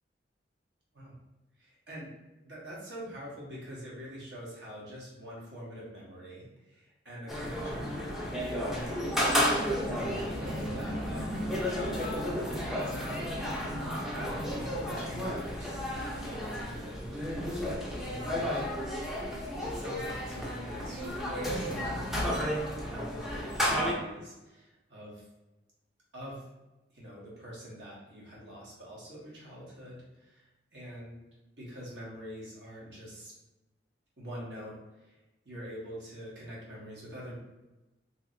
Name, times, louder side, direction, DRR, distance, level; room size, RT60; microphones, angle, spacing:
voice 1, 1.6-2.1 2.4-8.0 8.6-13.4 14.0-17.7 18.0-18.6 19.6-22.4 22.7-25.2 26.1-26.4 26.9-30.4 30.7-31.2 31.6-33.3 34.2-35.2 35.4-37.4, equal, 70° right, -5 dB, 1.1 m, -45 dB
sound 1, 7.3-23.9, equal, ahead, 0.4 m, -32 dB
2.8 x 2.8 x 2.5 m, 1.0 s
head